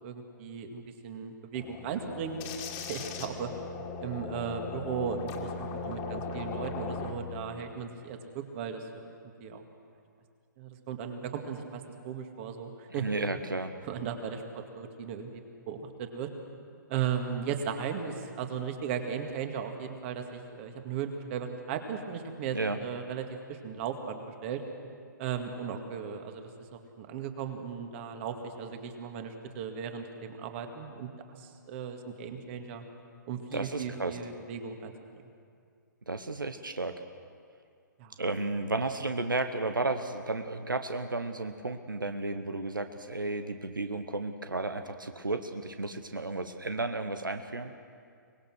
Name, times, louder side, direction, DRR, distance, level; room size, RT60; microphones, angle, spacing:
voice 1, 0.0-2.4 2.9-3.5 4.0-9.1 9.4-9.6 10.6-13.1 13.8-16.3 16.9-24.6 25.2-26.4 26.7-30.1 30.4-31.1 31.4-32.8 33.3-34.9 38.0-38.1, right 7 dB, 40° right, 5 dB, 2.1 m, -36 dB
sound 1, 1.5-7.1, left 4 dB, 30° left, 2.2 m, -38 dB
voice 2, 13.0-13.7 22.5-22.8 33.5-34.2 36.1-36.9 38.2-47.7, right 2 dB, 90° right, 8 dB, 1.1 m, -33 dB
24.0 x 20.0 x 6.3 m, 2.3 s
figure-of-eight pair, 125°, 11 cm